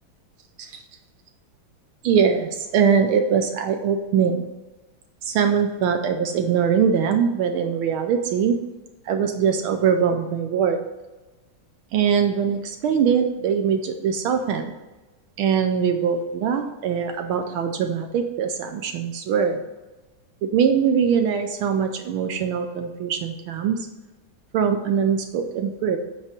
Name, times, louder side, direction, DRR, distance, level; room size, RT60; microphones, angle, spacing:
voice 1, 2.0-4.5 5.2-8.6 9.1-10.8 11.9-14.7 15.4-19.6 20.4-23.9 24.5-26.0, right 7 dB, 80° right, 6 dB, 1.5 m, -22 dB
9.1 x 4.4 x 5.1 m, 1.1 s
omnidirectional pair, 2.3 m